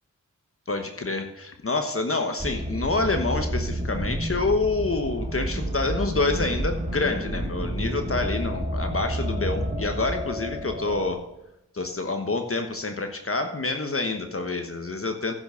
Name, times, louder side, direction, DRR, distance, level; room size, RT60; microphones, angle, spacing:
voice 1, 0.7-11.2 11.7-15.3, left 3 dB, 45° left, 6 dB, 1.2 m, -27 dB
sound 1, 2.4-11.1, right 1 dB, 20° right, 2.0 m, -30 dB
10.5 x 6.2 x 6.4 m, 0.88 s
cardioid pair, 45°, 31 cm